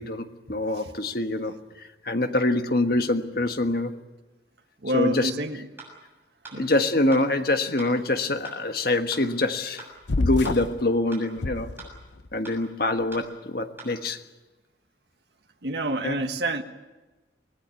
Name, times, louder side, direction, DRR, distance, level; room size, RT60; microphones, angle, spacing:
voice 1, 0.0-4.0 4.9-5.6 6.6-9.9 10.2-11.7 12.3-14.2 16.0-16.2, left 2 dB, 55° left, 7 dB, 1.5 m, -25 dB
voice 2, 4.8-5.6 6.5-6.7 15.6-16.6, right 1 dB, 65° right, 5 dB, 1.5 m, -27 dB
sound 1, 5.8-5.9 6.4-6.6 7.1-7.3 7.8-7.9 8.4-8.6 9.1-9.3 9.8-9.9 10.4-10.6 11.1-11.3 11.8-11.9 12.4-12.6 13.1-13.3 13.8-13.9, right 3 dB, 15° right, 7.0 m, -42 dB
sound 2, 10.1-10.8 11.4-12.3, left 3 dB, 75° left, 0.8 m, -28 dB
25.0 x 18.5 x 8.5 m, 1.2 s
head